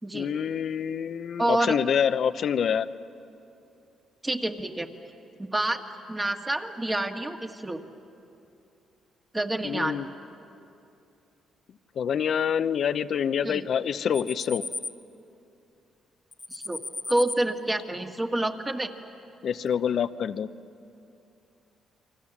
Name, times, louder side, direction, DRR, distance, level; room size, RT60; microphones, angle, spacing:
voice 1, 0.1-2.9 9.6-10.1 12.0-14.6 19.4-20.5, left 8 dB, 60° left, 13 dB, 0.7 m, -26 dB
voice 2, 1.4-1.8 4.2-4.9 5.4-5.8 6.1-7.8 9.3-10.0 13.4-13.6 16.5-16.8 17.1-18.9, right 1 dB, 15° right, 4 dB, 1.8 m, -28 dB
sound 1, 14.1-14.9 16.3-17.4, left 3 dB, 20° left, 1.2 m, -35 dB
30.0 x 23.5 x 7.3 m, 2.7 s
cardioid pair, 90°, 0 cm